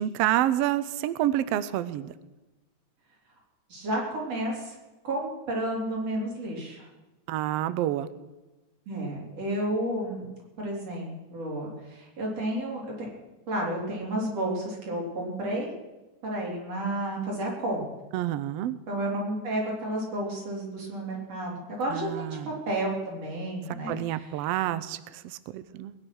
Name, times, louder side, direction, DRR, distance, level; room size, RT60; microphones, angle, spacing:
voice 1, 0.0-2.1 7.3-8.1 18.1-18.8 21.9-22.5 23.9-25.9, right 13 dB, 80° right, 15 dB, 1.4 m, -28 dB
voice 2, 3.7-4.8 5.0-6.8 8.9-10.3 10.6-13.1 13.5-15.7 16.2-17.9 18.9-24.3, right 1 dB, 55° right, -2 dB, 5.1 m, -31 dB
21.5 x 9.9 x 6.3 m, 1.1 s
omnidirectional pair, 3.5 m